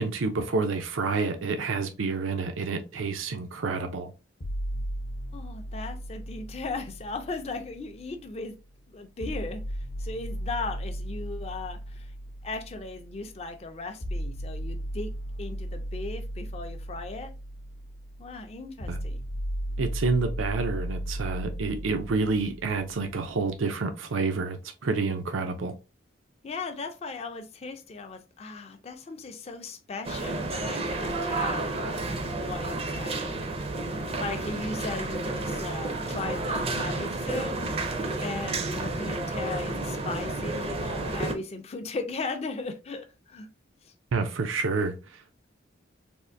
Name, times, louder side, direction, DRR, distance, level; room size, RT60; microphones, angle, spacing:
voice 1, 0.0-4.1 18.9-19.0 19.8-25.7 44.1-45.0, right 4 dB, 85° right, 0.5 m, -28 dB
sound 1, 4.4-8.4 9.2-23.2, equal, 55° left, 0.7 m, -36 dB
voice 2, 5.3-8.6 8.9-12.1 12.4-15.1 15.4-17.3 18.2-19.2 26.4-32.1 32.4-33.5 34.2-43.5 43.8-43.9, left 3 dB, 30° left, 0.4 m, -37 dB
sound 2, 30.0-41.3, right 2 dB, 30° right, 0.4 m, -31 dB
3.5 x 2.5 x 2.5 m
head